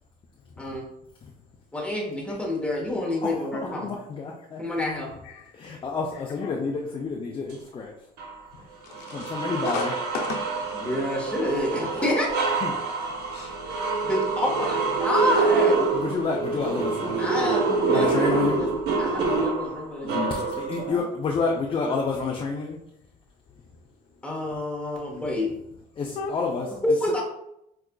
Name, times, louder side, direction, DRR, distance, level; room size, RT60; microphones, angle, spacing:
voice 1, 1.7-3.9 4.6-5.1 10.8-12.5 14.0-15.8 17.2-18.7 19.0-21.1 24.2-25.5 26.8-27.2, left 1 dB, 5° left, 1.0 m, -28 dB
voice 2, 3.2-4.9 5.5-7.9 9.1-9.9 12.6-12.7 15.9-17.5 17.9-18.6 20.7-22.8 26.0-26.7, left 4 dB, 30° left, 0.4 m, -29 dB
voice 3, 6.1-6.5 8.5-10.6 13.0-13.6 16.6-16.7 20.0-20.4 21.9-22.0 26.1-26.3, left 5 dB, 85° left, 0.6 m, -35 dB
sound 1, 8.2-8.3 8.9-20.9, right 4 dB, 75° right, 0.7 m, -26 dB
4.7 x 2.3 x 2.2 m
cardioid pair, 110°, 17 cm